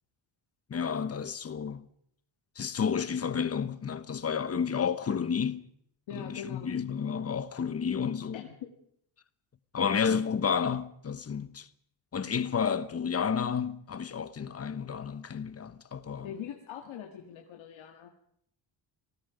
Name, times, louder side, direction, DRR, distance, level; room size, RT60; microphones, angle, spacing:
voice 1, 0.7-1.9 2.6-5.6 6.1-8.4 9.7-11.7 12.1-16.3, left 6 dB, 30° left, 1.1 m, -31 dB
voice 2, 6.1-6.7 8.3-8.5 16.2-18.1, left 8 dB, 80° left, 2.1 m, -42 dB
26.5 x 19.5 x 5.2 m
cardioid pair, 155°, 46 cm